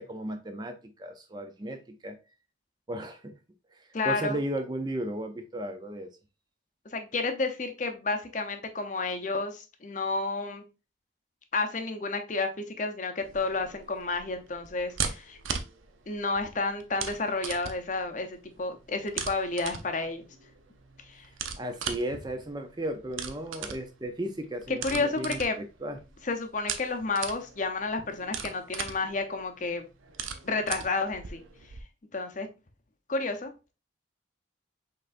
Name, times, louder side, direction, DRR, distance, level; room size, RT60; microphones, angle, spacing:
voice 1, 0.0-2.2 2.9-3.3 3.7-6.1 21.6-26.0, right 1 dB, 20° right, 0.5 m, -35 dB
voice 2, 3.9-4.4 6.9-10.6 11.5-15.4 16.1-20.3 21.0-21.3 24.8-25.6 26.2-29.9 30.4-31.4 32.1-32.5 33.1-33.7, left 3 dB, 40° left, 0.7 m, -31 dB
sound 1, 13.2-31.8, right 6 dB, 90° right, 0.6 m, -39 dB
5.5 x 3.8 x 2.5 m
head